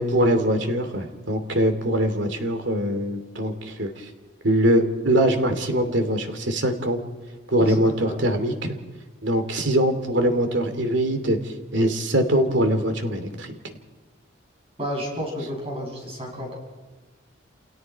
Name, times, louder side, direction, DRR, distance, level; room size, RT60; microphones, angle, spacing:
voice 1, 0.0-4.1 4.4-7.0 7.5-8.7 9.2-13.6, right 1 dB, 65° right, 7 dB, 2.7 m, -22 dB
voice 2, 7.6-8.2 14.8-16.5, equal, 30° right, -2 dB, 7.0 m, -31 dB
29.5 x 29.0 x 4.7 m, 1.3 s
head